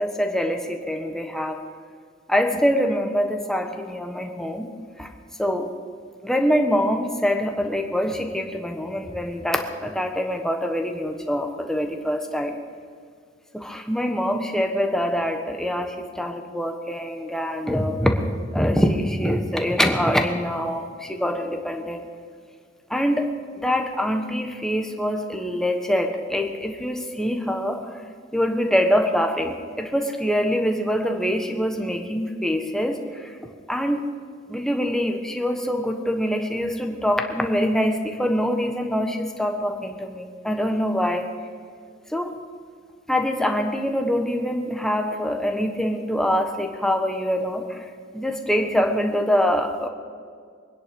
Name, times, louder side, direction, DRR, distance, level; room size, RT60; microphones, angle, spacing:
voice 1, 0.0-1.6 2.3-4.7 5.0-5.1 5.4-5.7 6.2-12.5 13.5-18.3 18.5-22.0 22.9-23.3 23.6-27.8 28.3-33.3 33.7-34.0 34.5-41.3 42.1-42.3 43.1-47.8 48.1-49.9, equal, 5° left, 3 dB, 1.2 m, -24 dB
23.0 x 10.5 x 5.3 m, 2.1 s
head